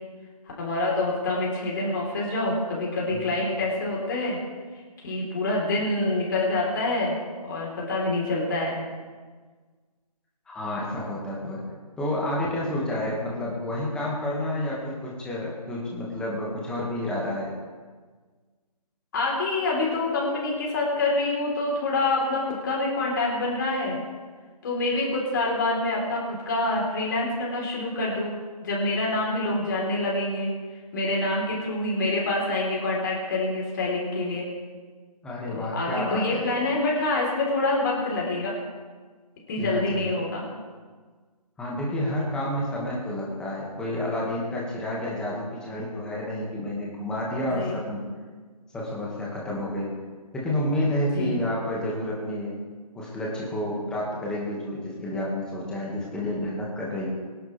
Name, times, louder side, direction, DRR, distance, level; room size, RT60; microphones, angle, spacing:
voice 1, 0.6-4.4 5.0-7.2 7.4-8.8 19.1-24.0 24.6-28.3 28.6-30.5 30.9-34.5 35.5-38.5 39.5-40.5 47.5-47.8 51.1-51.4, left 2 dB, 30° left, -3 dB, 4.3 m, -26 dB
voice 2, 10.5-11.6 12.0-17.5 35.2-36.5 39.6-40.1 41.6-48.0 48.7-49.9 50.3-52.5 52.9-57.1, left 1 dB, 5° left, -5 dB, 2.1 m, -30 dB
24.0 x 11.5 x 3.6 m, 1.5 s
figure-of-eight pair, 155°, 21 cm